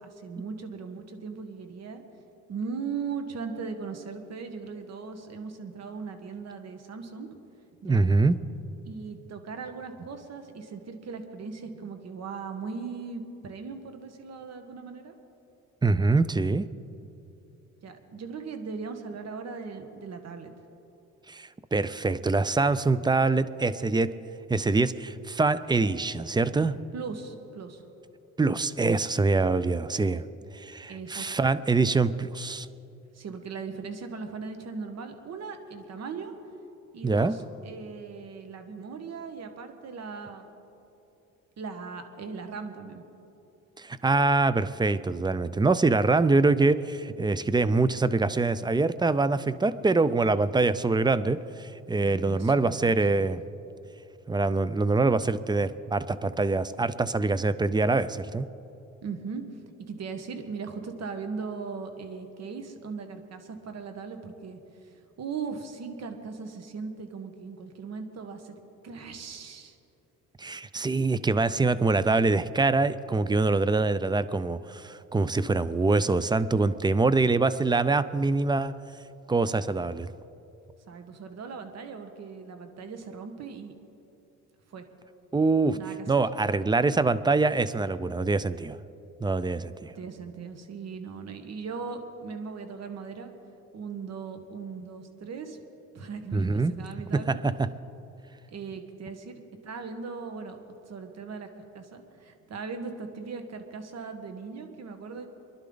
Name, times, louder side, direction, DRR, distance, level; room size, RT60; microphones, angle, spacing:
voice 1, 0.0-2.0 2.5-7.3 7.8-8.1 8.9-15.1 17.8-20.5 26.9-27.8 30.9-31.3 33.1-36.3 36.9-40.6 41.6-43.0 52.0-53.3 59.0-59.4 59.8-64.9 65.2-68.5 68.8-69.7 80.9-83.7 84.7-84.8 85.7-86.1 89.8-93.3 93.7-95.6 95.9-97.4 98.5-100.6 100.9-101.5 101.7-105.3, right 5 dB, 60° right, 7 dB, 1.5 m, -38 dB
voice 2, 7.8-8.4 15.8-16.7 21.3-24.2 24.5-26.8 28.4-30.2 30.5-32.7 37.0-37.3 43.8-53.4 54.3-58.5 70.4-78.8 79.3-80.1 85.3-85.8 86.1-88.8 89.2-89.9 96.3-96.7 97.2-97.5, right 3 dB, 15° right, 15 dB, 0.5 m, -24 dB
24.5 x 11.5 x 4.0 m, 2.9 s
cardioid pair, 90°, 30 cm